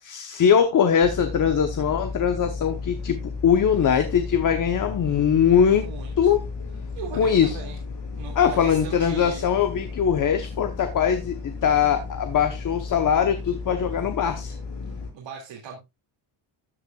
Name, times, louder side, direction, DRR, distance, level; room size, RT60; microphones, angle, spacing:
voice 1, 0.0-5.9 6.2-6.4 7.2-7.5 8.4-14.5, left 8 dB, 40° left, 1.0 m, -21 dB
sound 1, 1.0-15.1, left 4 dB, 60° left, 6.3 m, -34 dB
voice 2, 5.8-6.3 6.9-7.8 8.2-9.4 14.9-15.8, right 6 dB, 70° right, 2.3 m, -39 dB
13.0 x 8.1 x 2.3 m
cardioid pair, 180°, 47 cm